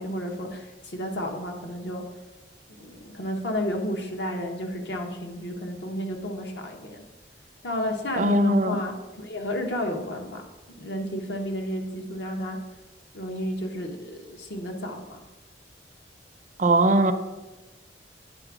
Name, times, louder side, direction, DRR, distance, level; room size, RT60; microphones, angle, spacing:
voice 1, 0.0-2.0 2.8-7.0 7.6-10.4 10.8-12.6 13.1-15.2, equal, 70° left, 2 dB, 1.0 m, -32 dB
voice 2, 8.2-8.8 16.6-17.1, right 1 dB, 40° right, 8 dB, 0.5 m, -20 dB
8.9 x 3.4 x 6.0 m, 1.1 s
head